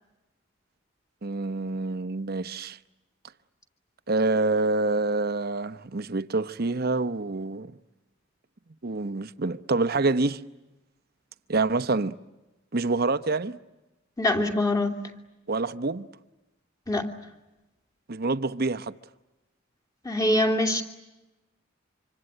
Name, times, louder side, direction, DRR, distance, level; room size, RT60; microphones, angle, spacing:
voice 1, 1.2-2.8 4.1-7.7 8.8-10.4 11.5-12.1 12.7-13.6 15.5-16.1 18.1-18.9, right 3 dB, 50° right, 0.9 m, -26 dB
voice 2, 14.2-14.9 16.9-17.1 20.0-20.8, left 1 dB, 20° left, 2.7 m, -23 dB
26.0 x 26.0 x 8.9 m
head